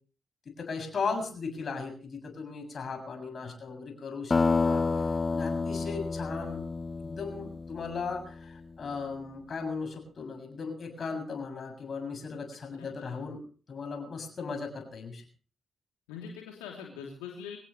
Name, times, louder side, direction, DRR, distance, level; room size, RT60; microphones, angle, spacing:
voice 1, 0.6-6.6 7.0-13.4 13.7-15.2, left 4 dB, 55° left, 5 dB, 7.1 m, -37 dB
sound 1, 4.3-8.6, left 4 dB, 40° left, 1.1 m, -29 dB
voice 2, 12.8-13.2 16.1-17.6, left 7 dB, 85° left, 0 dB, 3.1 m, -43 dB
24.5 x 17.5 x 3.2 m, 0.40 s
hypercardioid pair, 40°, 0 cm